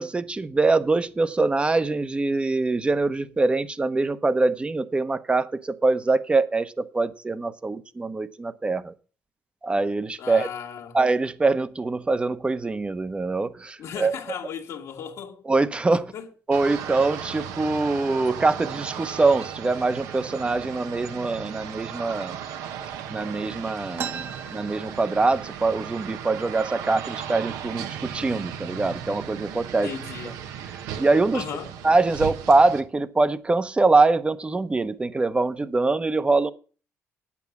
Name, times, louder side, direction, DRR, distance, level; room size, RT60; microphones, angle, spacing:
voice 1, 0.0-8.9 9.6-10.5 10.9-14.1 15.5-16.1 16.5-22.4 23.1-29.9 31.0-31.4 31.8-36.5, right 3 dB, 20° right, 0.9 m, -23 dB
voice 2, 10.2-11.0 13.8-15.4 15.9-16.3 29.8-30.4 31.3-31.7, left 8 dB, 70° left, 1.7 m, -36 dB
sound 1, 16.5-32.8, right 9 dB, 90° right, 1.2 m, -36 dB
sound 2, 24.0-25.6 25.9-26.0 26.3-26.9 27.5-27.6 28.3-28.5 29.0-29.4, right 7 dB, 45° right, 1.2 m, -37 dB
9.2 x 8.5 x 7.1 m
cardioid pair, 95°, 6 cm